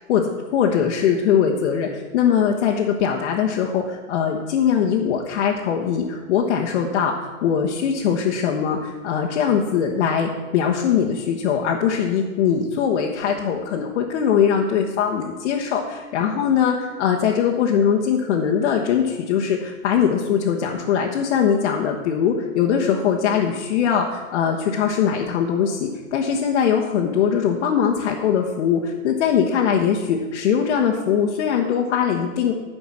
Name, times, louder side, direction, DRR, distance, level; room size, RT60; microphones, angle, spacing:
voice 1, 0.1-32.5, left 7 dB, 55° left, 0 dB, 1.2 m, -21 dB
12.5 x 5.2 x 7.5 m, 1.3 s
supercardioid pair, 160°, 40 cm